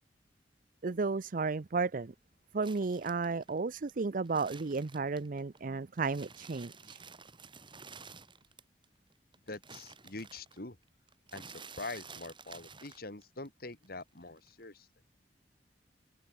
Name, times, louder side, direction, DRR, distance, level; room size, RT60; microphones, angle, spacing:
voice 1, 0.8-2.1 2.5-7.0, right 4 dB, 50° right, 0.6 m, -33 dB
sound 1, 2.6-5.6 5.9-8.8 9.1-13.5 13.7-14.6, right 5 dB, 30° right, 5.1 m, -52 dB
voice 2, 9.5-10.8 11.3-14.9, left 3 dB, 60° left, 3.0 m, -44 dB
head